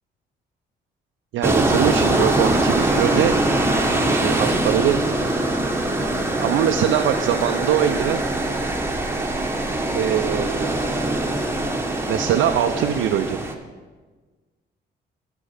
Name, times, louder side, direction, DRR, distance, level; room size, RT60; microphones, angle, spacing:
voice 1, 1.3-3.4 4.1-5.0 6.4-8.2 9.9-10.7 12.1-13.4, right 10 dB, 80° right, 6 dB, 0.5 m, -22 dB
sound 1, 1.4-13.5, right 1 dB, 10° right, 1.0 m, -22 dB
8.1 x 6.1 x 5.6 m, 1.4 s
cardioid pair, 90°, 20 cm